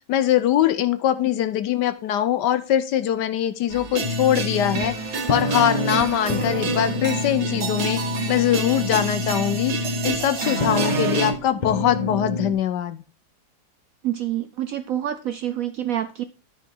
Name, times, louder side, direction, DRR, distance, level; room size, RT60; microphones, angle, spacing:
voice 1, 0.1-4.9 5.3-8.0 8.3-9.8 10.0-13.0, left 11 dB, 70° left, 12 dB, 1.2 m, -22 dB
sound 1, 3.7-11.3, right 4 dB, 45° right, 1.3 m, -29 dB
sound 2, 4.0-12.5, left 1 dB, 45° left, 0.6 m, -28 dB
voice 2, 14.0-16.2, right 11 dB, 80° right, 10 dB, 0.7 m, -27 dB
12.5 x 5.0 x 3.7 m, 0.35 s
omnidirectional pair, 2.1 m